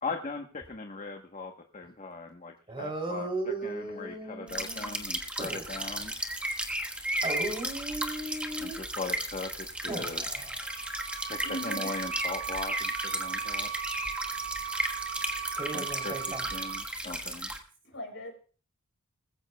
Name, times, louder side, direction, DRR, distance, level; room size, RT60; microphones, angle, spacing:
voice 1, 0.0-6.1 8.6-10.2 11.3-13.7 15.7-17.5, left 3 dB, 35° left, 4 dB, 1.1 m, -39 dB
voice 2, 2.7-5.0 5.4-6.0 7.2-8.8 9.9-10.5 15.5-16.4, right 2 dB, 25° right, 4 dB, 3.1 m, -36 dB
sound 1, 4.5-17.6, right 1 dB, 5° right, 1.3 m, -34 dB
sound 2, 10.3-16.8, right 9 dB, 85° right, 2.5 m, -38 dB
voice 3, 11.4-11.9 17.9-18.4, equal, 65° left, 5 dB, 3.7 m, -39 dB
20.5 x 15.0 x 2.3 m, 0.40 s
head